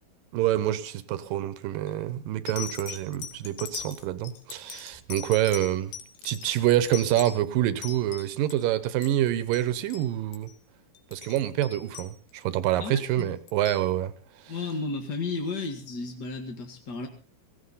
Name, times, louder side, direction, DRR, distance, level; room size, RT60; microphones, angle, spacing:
voice 1, 0.3-5.9 6.2-10.5 11.1-14.1 14.5-14.6, right 13 dB, 70° right, 2.4 m, -27 dB
sound 1, 1.6-1.9 2.5-8.6 8.9-9.7 9.9-10.1 10.3-10.5 11.0-12.6 13.2-13.8 14.7-14.8, left 9 dB, 75° left, 3.7 m, -41 dB
voice 2, 12.8-13.4 14.5-17.1, left 3 dB, 50° left, 1.2 m, -33 dB
17.5 x 17.0 x 4.1 m
omnidirectional pair, 4.6 m